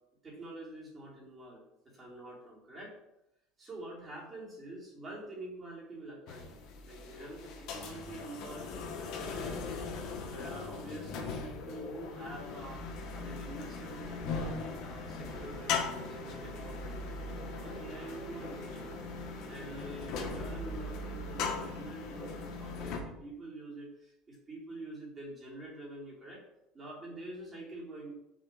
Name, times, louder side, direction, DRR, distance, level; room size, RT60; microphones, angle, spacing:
voice 1, 0.2-2.9 3.6-9.6 10.2-12.8 13.1-17.0 17.4-18.8 19.4-26.4 26.7-28.1, right 2 dB, 20° right, -5 dB, 3.2 m, -46 dB
sound 1, 6.3-23.0, left 4 dB, 55° left, 1.6 m, -39 dB
sound 2, 15.3-21.8, right 4 dB, 65° right, 1.9 m, -51 dB
6.4 x 4.2 x 6.5 m, 0.85 s
cardioid pair, 145°, 0 cm